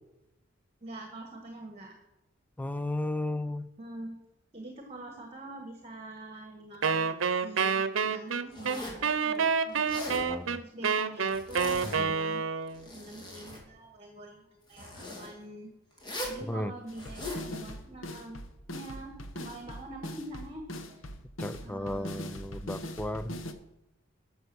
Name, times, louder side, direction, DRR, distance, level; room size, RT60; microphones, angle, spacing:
voice 1, 0.8-2.0 3.8-4.2 4.5-10.0 10.5-12.4 12.8-15.7 16.3-18.4 18.7-21.1 21.6-22.3, right 2 dB, 30° right, 4 dB, 1.5 m, -45 dB
voice 2, 2.6-3.7 10.1-10.6 11.9-12.1 16.5-16.7 21.4-23.4, left 1 dB, 10° left, 14 dB, 0.4 m, -34 dB
Wind instrument woodwind instrument, 6.8-12.8, right 5 dB, 85° right, 0.7 m, -28 dB
Zipper (clothing), 8.5-9.1 9.7-10.3 11.3-12.2 12.6-13.6 14.7-15.3 16.0-16.4 16.9-17.5, left 1 dB, 25° left, 2.8 m, -40 dB
sound 1, 16.9-23.5, left 1 dB, 85° left, 1.1 m, -41 dB
12.0 x 6.9 x 6.3 m, 0.95 s
head